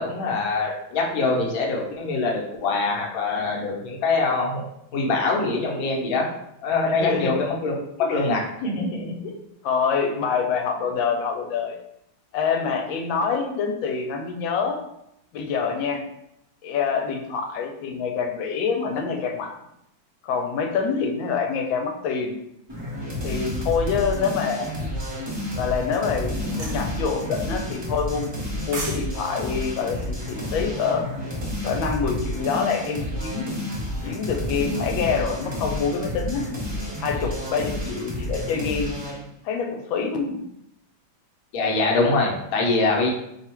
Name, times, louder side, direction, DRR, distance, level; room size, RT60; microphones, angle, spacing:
voice 1, 0.0-4.6 4.9-6.3 6.6-7.7 8.1-9.3 41.5-43.1, left 3 dB, 60° left, -1 dB, 1.0 m, -24 dB
voice 2, 7.0-7.4 8.0-8.1 9.6-11.8 12.3-14.8 15.3-16.1 16.6-19.5 20.2-22.4 23.2-25.0 25.6-31.0 31.6-33.5 34.0-36.5 37.0-38.9 39.4-40.4, left 5 dB, 80° left, 3 dB, 1.3 m, -26 dB
sound 1, 22.7-39.2, left 1 dB, 40° right, 0.3 m, -30 dB
sound 2, 26.6-26.8 28.4-29.0 29.3-29.5, right 2 dB, 65° right, 1.6 m, -32 dB
3.5 x 2.3 x 4.3 m, 0.79 s
omnidirectional pair, 2.1 m